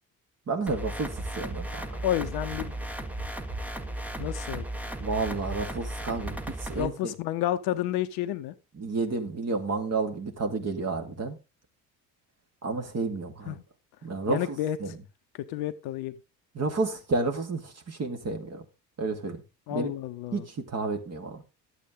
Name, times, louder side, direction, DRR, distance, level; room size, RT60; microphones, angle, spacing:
voice 1, 0.5-2.0 5.0-7.1 8.8-11.4 12.6-13.6 14.0-14.9 16.6-18.6 19.0-19.4 19.7-19.9 20.3-21.4, right 3 dB, 30° right, 2.0 m, -31 dB
sound 1, 0.7-6.9, right 1 dB, 5° right, 1.0 m, -36 dB
sound 2, 1.1-6.4, right 2 dB, 70° right, 6.4 m, -44 dB
voice 2, 2.0-2.8 4.2-4.6 6.7-8.5 13.5-13.6 14.3-15.0 15.5-16.1 19.7-20.5, left 12 dB, 50° left, 0.8 m, -30 dB
12.0 x 8.3 x 3.8 m
figure-of-eight pair, 55°, 50 cm